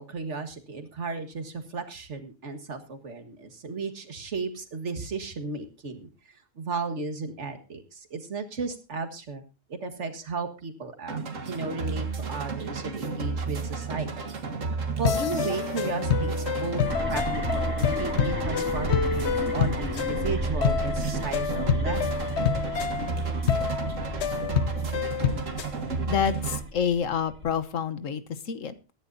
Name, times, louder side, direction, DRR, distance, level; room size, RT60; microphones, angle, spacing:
voice 1, 0.0-9.4 9.7-11.2 11.4-14.4 15.0-16.8 17.1-17.2 17.5-22.3, right 4 dB, 65° right, 7 dB, 2.0 m, -35 dB
sound 1, 11.1-26.6, right 4 dB, 85° right, 2.0 m, -32 dB
sound 2, 15.0-25.7, left 7 dB, 60° left, 1.1 m, -28 dB
sound 3, 16.8-27.6, equal, 10° right, 2.4 m, -36 dB
voice 2, 26.1-28.7, left 7 dB, 85° left, 12 dB, 1.5 m, -28 dB
22.0 x 10.5 x 2.7 m, 0.31 s
omnidirectional pair, 1.3 m